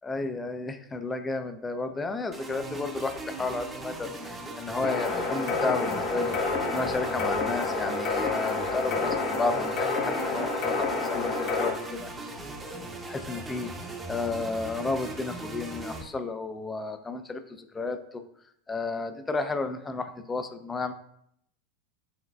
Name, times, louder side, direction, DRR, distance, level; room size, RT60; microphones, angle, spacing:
voice 1, 0.0-6.4 6.7-12.1 13.0-13.7 14.1-18.2 18.7-20.9, left 3 dB, 15° left, 8 dB, 0.4 m, -32 dB
sound 1, 2.3-16.0, right 2 dB, 15° right, 0.7 m, -39 dB
sound 2, 4.8-11.7, left 3 dB, 50° left, 0.8 m, -29 dB
6.2 x 3.2 x 2.3 m, 0.72 s
figure-of-eight pair, 85°, 0 cm